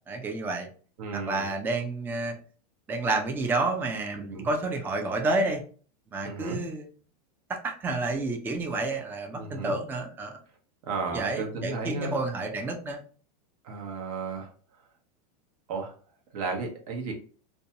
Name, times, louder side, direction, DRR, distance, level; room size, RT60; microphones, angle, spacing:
voice 1, 0.1-0.7 1.1-2.4 2.9-5.6 6.1-6.9 7.5-10.4 11.1-13.0, right 2 dB, 10° right, 3 dB, 0.3 m, -30 dB
voice 2, 1.0-1.5 4.3-4.5 6.2-6.6 9.4-9.8 10.8-12.1 13.6-14.5 15.7-15.9 16.3-17.1, right 4 dB, 65° right, 2 dB, 0.9 m, -33 dB
2.6 x 2.2 x 2.7 m, 0.41 s
supercardioid pair, 135°, 20 cm